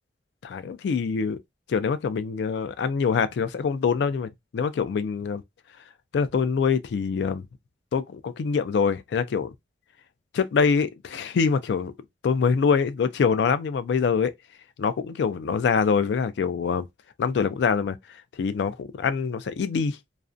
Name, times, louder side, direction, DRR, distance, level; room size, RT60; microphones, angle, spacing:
voice 1, 0.4-1.4 1.7-5.4 6.1-7.4 7.9-9.5 10.3-11.9 12.2-14.3 14.8-16.8 17.2-18.0 18.3-20.0, left 5 dB, 70° left, 0.3 m, -24 dB
2.4 x 2.1 x 2.4 m
head